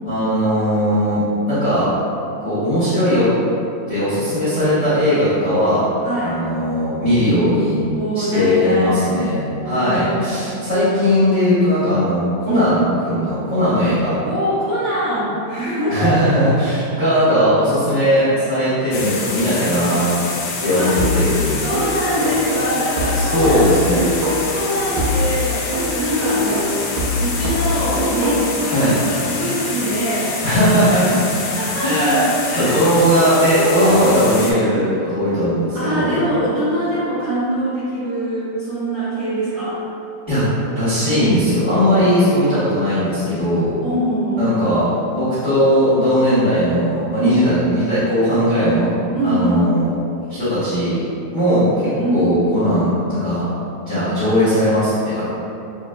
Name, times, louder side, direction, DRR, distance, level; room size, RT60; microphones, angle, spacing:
voice 1, 0.0-1.9 2.4-3.3 3.9-5.8 6.2-7.8 8.1-14.2 15.9-20.1 20.6-21.5 23.3-24.1 28.7-29.0 30.4-31.2 31.5-32.3 32.6-36.2 40.3-40.4 40.7-43.8 44.4-48.9 49.2-49.9 50.3-51.0 51.3-53.5 53.8-55.2, equal, 60° left, -14 dB, 0.7 m, -18 dB
voice 2, 6.0-6.3 7.9-9.0 9.5-10.5 12.4-12.7 14.2-16.5 20.7-21.0 21.6-23.7 24.4-30.3 30.8-31.1 31.5-32.7 33.0-33.1 33.5-34.2 34.6-34.9 35.7-39.7 43.8-44.5 47.2-47.4 49.1-49.6 52.0-52.3, equal, 65° right, -16 dB, 1.1 m, -23 dB
sound 1, 18.9-34.5, left 3 dB, 80° left, 1.7 m, -27 dB
sound 2, 21.0-24.7 25.0-28.7, left 1 dB, 80° right, 1.6 m, -22 dB
6.4 x 2.2 x 2.2 m, 2.6 s
omnidirectional pair, 3.7 m